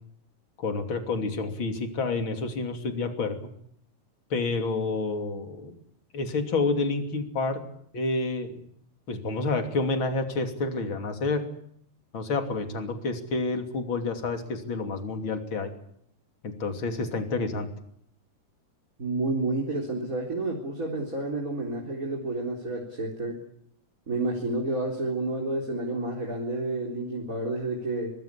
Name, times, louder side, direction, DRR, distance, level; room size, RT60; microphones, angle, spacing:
voice 1, 0.6-3.4 4.3-5.8 6.1-7.6 7.9-8.6 9.1-11.4 12.1-15.7 16.4-17.7, left 3 dB, 45° left, 6 dB, 3.6 m, -29 dB
voice 2, 19.0-23.4 24.1-28.1, right 2 dB, 25° right, 0 dB, 4.2 m, -30 dB
25.0 x 20.0 x 8.5 m, 0.69 s
omnidirectional pair, 3.3 m